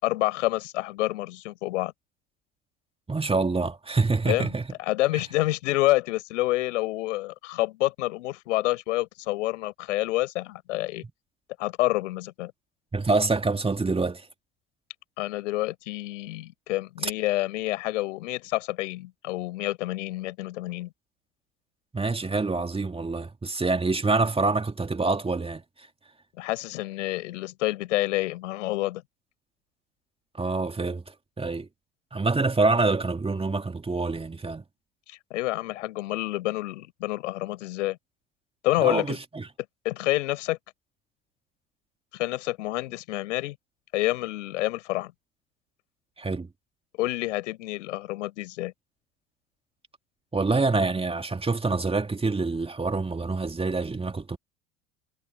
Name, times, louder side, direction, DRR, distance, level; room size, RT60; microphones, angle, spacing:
voice 1, 0.0-1.9 4.3-4.5 4.8-11.0 11.6-12.5 15.2-20.9 26.4-29.0 35.1-38.0 38.6-39.2 39.8-40.6 42.1-43.5 43.9-45.1 47.0-48.7, left 18 dB, 65° left, 6.6 m, -28 dB
voice 2, 3.1-4.6 5.1-5.2 12.9-14.3 17.0-17.1 21.9-25.9 30.3-31.7 32.1-34.6 38.8-39.5 46.2-46.5 50.3-54.4, right 3 dB, 15° right, 2.3 m, -26 dB
figure-of-eight pair, 65°, 40 cm